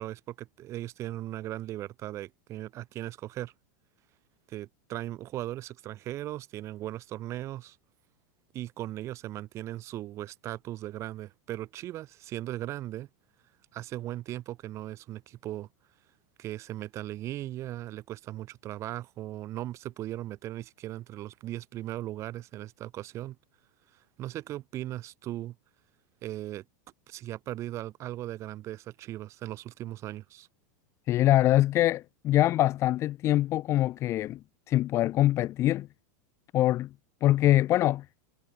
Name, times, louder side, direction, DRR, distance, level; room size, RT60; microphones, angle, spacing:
voice 1, 0.0-3.5 4.5-7.8 8.5-13.1 13.7-15.7 16.4-23.4 24.2-25.5 26.2-26.6 27.1-30.5, right 14 dB, 30° right, 6.1 m, -38 dB
voice 2, 31.1-34.4 34.7-35.9 36.5-36.9 37.2-38.0, left 14 dB, 30° left, 1.2 m, -24 dB
supercardioid pair, 155°, 10 cm